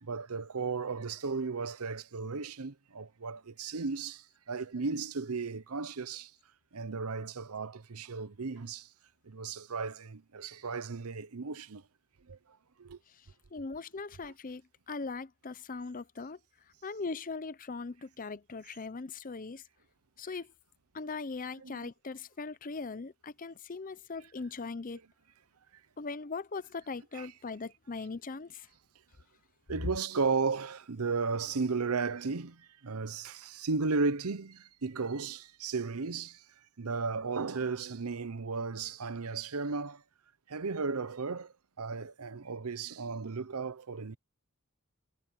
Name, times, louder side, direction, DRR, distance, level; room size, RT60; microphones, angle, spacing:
voice 1, 0.0-6.3 6.7-8.9 9.3-11.8 12.3-12.4 12.8-13.0 21.6-21.9 24.9-25.0 27.1-27.3 29.7-36.4 36.8-40.0 40.5-41.5 41.8-44.2, right 4 dB, 90° right, 0.8 m, -35 dB
voice 2, 13.5-14.6 14.9-16.4 16.8-19.6 20.2-20.5 20.9-25.0 26.0-28.7, left 4 dB, 40° left, 0.6 m, -40 dB
head